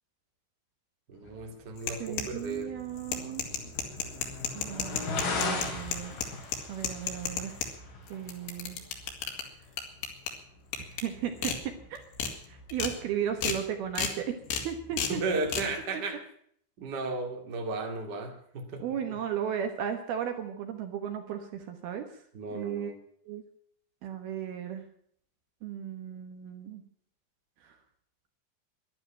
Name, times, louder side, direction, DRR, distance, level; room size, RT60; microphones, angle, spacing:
sound 1, 1.1-15.8, left 3 dB, 60° left, 4.6 m, -41 dB
voice 1, 1.1-2.7 15.1-16.2 16.8-19.2 22.3-22.9, right 3 dB, 30° right, 3 dB, 2.1 m, -35 dB
sound 2, 1.8-2.6 3.0-7.7 8.1-9.4 9.8-10.3 10.7-11.0 11.4-11.6 12.0-12.3 12.7-12.9 13.4-13.6 13.9-14.1 14.5-14.6 15.0-15.1 15.5-15.6, left 7 dB, 80° left, 4.5 m, -32 dB
voice 2, 2.0-3.4 4.5-7.6 8.1-8.8 10.8-11.5 11.9-12.0 12.5-14.4 14.6-15.2 18.8-22.1 22.5-22.9 23.3-23.4 24.0-24.8 25.6-26.8 27.6-27.7, right 9 dB, 70° right, 6 dB, 3.0 m, -35 dB
12.0 x 11.5 x 10.0 m, 0.64 s
omnidirectional pair, 5.1 m